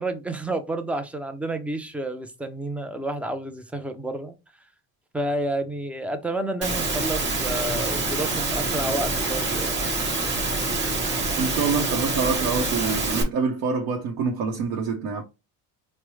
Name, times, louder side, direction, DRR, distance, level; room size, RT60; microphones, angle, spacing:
voice 1, 0.0-4.3 5.1-9.8, right 1 dB, 5° right, 0.3 m, -30 dB
Engine / Mechanisms, 6.6-13.2, right 2 dB, 30° right, 1.0 m, -26 dB
voice 2, 11.4-15.2, right 5 dB, 70° right, 0.8 m, -26 dB
4.6 x 2.0 x 3.0 m
cardioid pair, 145°, 35 cm